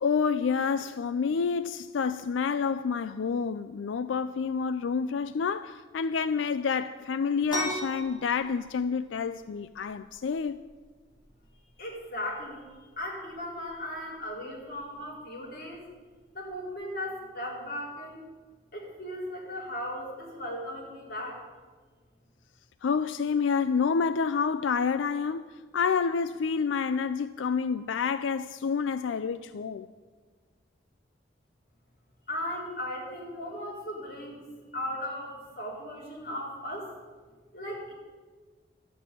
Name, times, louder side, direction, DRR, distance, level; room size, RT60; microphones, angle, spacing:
voice 1, 0.0-10.6 22.8-29.9, left 5 dB, 90° left, 0.4 m, -28 dB
sound 1, 7.5-16.9, right 1 dB, 25° left, 2.9 m, -42 dB
voice 2, 11.8-12.7 13.0-15.9 16.3-18.2 18.7-21.4 32.3-36.9 37.5-37.9, left 1 dB, 50° left, 4.4 m, -37 dB
12.5 x 7.5 x 10.0 m
head